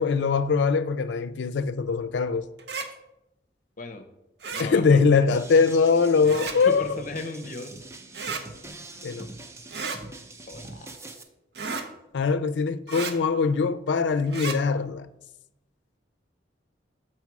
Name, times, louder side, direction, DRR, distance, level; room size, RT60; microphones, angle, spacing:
voice 1, 0.0-2.4 4.6-6.9 9.0-9.3 12.1-15.1, left 5 dB, 80° left, 0.4 m, -22 dB
sound 1, 2.6-2.9 4.4-4.7 6.2-6.6 8.1-8.4 9.7-10.0 11.5-11.9 12.9-13.1 14.3-14.6, right 4 dB, 65° right, 0.7 m, -32 dB
voice 2, 4.5-5.4 6.4-7.8 10.5-10.9, left 2 dB, 45° left, 0.7 m, -36 dB
sound 2, 5.3-11.2, right 2 dB, 15° right, 0.5 m, -43 dB
7.2 x 4.5 x 4.7 m
head